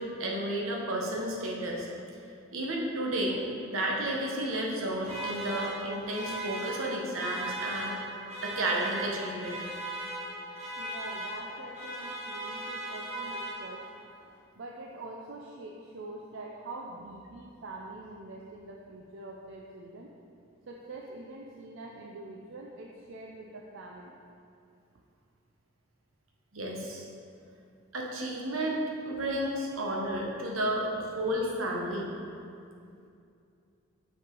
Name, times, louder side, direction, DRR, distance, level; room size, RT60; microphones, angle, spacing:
voice 1, 0.0-1.9 2.5-3.4 3.7-7.9 8.4-9.6 26.5-27.0 27.9-32.1, right 1 dB, 80° right, -1 dB, 1.1 m, -32 dB
sound 1, 5.0-14.0, right 1 dB, 35° right, 1.3 m, -38 dB
voice 2, 10.8-13.8 14.6-20.1 20.7-24.2 29.3-29.4 31.3-31.4, right 2 dB, 65° right, -1 dB, 0.5 m, -44 dB
6.5 x 5.5 x 3.8 m, 2.5 s
head